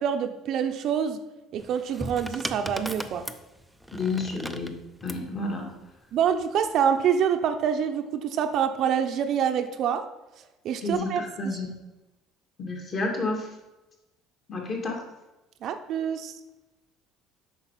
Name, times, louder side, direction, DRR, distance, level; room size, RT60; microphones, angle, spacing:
voice 1, 0.0-1.2 1.5-3.3 6.1-10.0 10.6-11.2 15.6-16.3, right 8 dB, 50° right, 7 dB, 0.7 m, -26 dB
sound 1, 1.6-5.3 6.3-6.7, equal, ahead, 0.5 m, -37 dB
voice 2, 3.9-4.7 5.0-5.7 10.8-11.7 12.6-13.5 14.5-15.0, left 3 dB, 35° left, 1 dB, 2.2 m, -30 dB
8.3 x 5.7 x 5.7 m, 1.0 s
cardioid pair, 145°, 0 cm